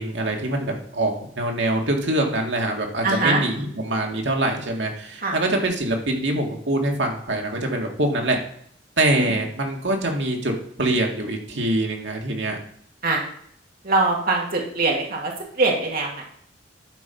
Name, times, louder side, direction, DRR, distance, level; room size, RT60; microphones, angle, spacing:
voice 1, 0.0-8.4 9.0-10.5 10.8-12.6, right 1 dB, 70° right, 1 dB, 2.0 m, -24 dB
voice 2, 3.0-3.4 5.2-5.4 9.2-9.3 13.0-13.2 13.8-15.3 15.6-16.2, right 3 dB, 55° right, -1 dB, 2.0 m, -22 dB
11.5 x 4.4 x 5.4 m, 0.64 s
head